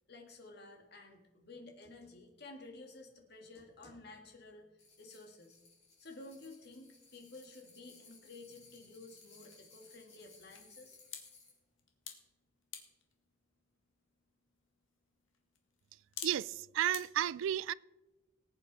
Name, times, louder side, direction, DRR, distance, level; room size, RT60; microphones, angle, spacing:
voice 1, 0.1-5.6 6.0-11.0, left 2 dB, 50° left, 2.0 m, -53 dB
sound 1, 4.8-11.6, left 4 dB, 35° left, 5.0 m, -61 dB
sound 2, 7.7-17.0, left 8 dB, 75° left, 1.6 m, -53 dB
voice 2, 16.2-17.7, right 10 dB, 75° right, 0.3 m, -33 dB
19.0 x 8.7 x 4.1 m
head